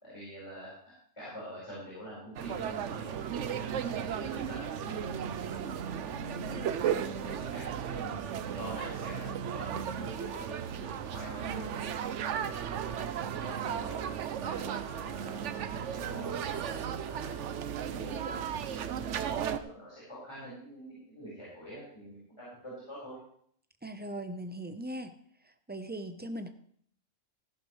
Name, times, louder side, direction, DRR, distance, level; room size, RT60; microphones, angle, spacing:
voice 1, 0.0-5.7 6.3-6.7 7.0-11.8 12.3-12.6 12.9-16.5 17.0-19.0 19.5-23.2, equal, 20° left, -8 dB, 4.9 m, -46 dB
sound 1, 2.4-19.6, right 8 dB, 70° right, 1.0 m, -35 dB
voice 2, 23.8-25.1 25.7-26.5, right 1 dB, 10° right, 8 dB, 0.5 m, -39 dB
15.0 x 11.5 x 3.2 m, 0.62 s
omnidirectional pair, 1.4 m